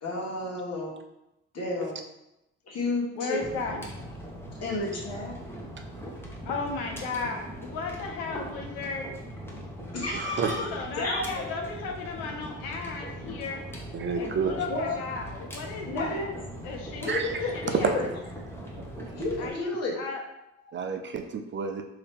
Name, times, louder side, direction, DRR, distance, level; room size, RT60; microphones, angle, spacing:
voice 1, 0.0-0.9 1.5-2.0 2.7-3.4 4.6-5.3 9.9-10.7 11.0-11.5 14.5-15.0 15.9-16.3 17.0-18.0 19.1-20.0, left 2 dB, 50° left, -3 dB, 1.3 m, -31 dB
voice 2, 3.2-3.8 6.5-9.1 10.5-13.6 14.2-16.2 16.6-17.2 17.5-17.9 19.4-20.2, left 4 dB, 90° left, 2 dB, 0.6 m, -35 dB
sound 1, 3.4-19.5, equal, 5° left, 0.9 m, -40 dB
voice 3, 10.1-10.6 13.9-14.5 17.1-17.3 17.8-17.9 20.7-21.8, right 5 dB, 35° right, 5 dB, 0.5 m, -29 dB
2.9 x 2.8 x 3.4 m, 0.88 s
supercardioid pair, 65°, 32 cm